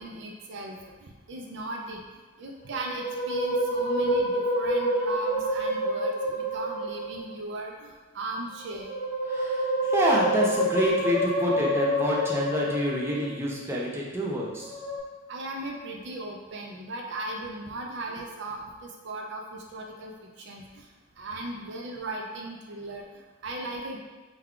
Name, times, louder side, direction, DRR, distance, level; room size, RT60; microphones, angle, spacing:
voice 1, 0.0-2.0 2.4-8.9 15.3-20.1 20.5-20.8 21.2-23.1 23.4-24.0, right 2 dB, 65° right, 1 dB, 0.5 m, -37 dB
Musical instrument, 2.7-7.3 8.6-13.4 14.6-15.0, equal, 20° left, 0.8 m, -28 dB
voice 2, 9.3-14.8, equal, 15° right, -4 dB, 0.5 m, -27 dB
3.4 x 2.3 x 3.6 m, 1.2 s
head